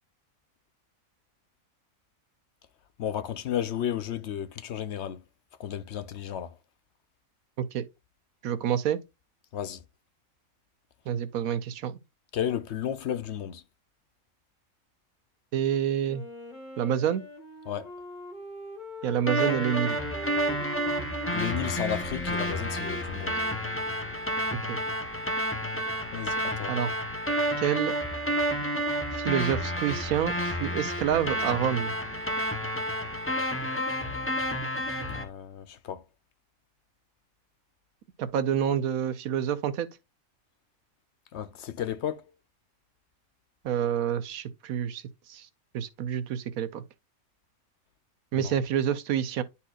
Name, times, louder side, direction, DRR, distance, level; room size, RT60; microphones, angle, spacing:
voice 1, 3.0-5.2 5.6-6.5 9.5-9.8 12.3-13.6 17.7-17.9 21.3-23.4 26.1-26.7 35.1-36.0 41.3-42.2 48.3-48.5, left 9 dB, 65° left, 0.8 m, -33 dB
voice 2, 8.4-9.0 11.1-12.0 15.5-16.2 16.8-17.2 19.0-20.0 24.7-24.8 26.7-26.9 27.6-27.9 29.1-31.9 38.2-39.9 43.6-45.0 45.3-45.5 45.7-46.8 48.3-49.4, right 9 dB, 90° right, 1.2 m, -28 dB
Wind instrument woodwind instrument, 16.1-23.7, left 2 dB, 35° left, 1.6 m, -43 dB
sound 1, 19.3-35.2, equal, 10° left, 0.8 m, -30 dB
10.5 x 4.2 x 2.4 m
omnidirectional pair, 1.4 m